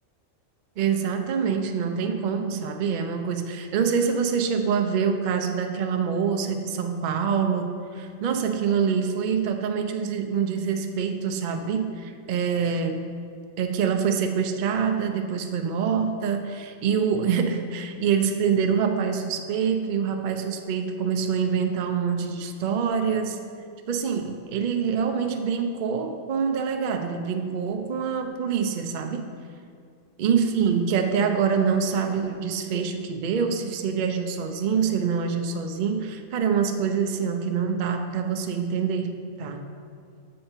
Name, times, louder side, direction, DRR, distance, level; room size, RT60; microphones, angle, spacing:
voice 1, 0.8-13.1 13.6-23.4 23.9-29.3 30.2-39.6, right 6 dB, 75° right, 6 dB, 0.4 m, -25 dB
6.5 x 6.5 x 4.4 m, 2.3 s
omnidirectional pair, 1.4 m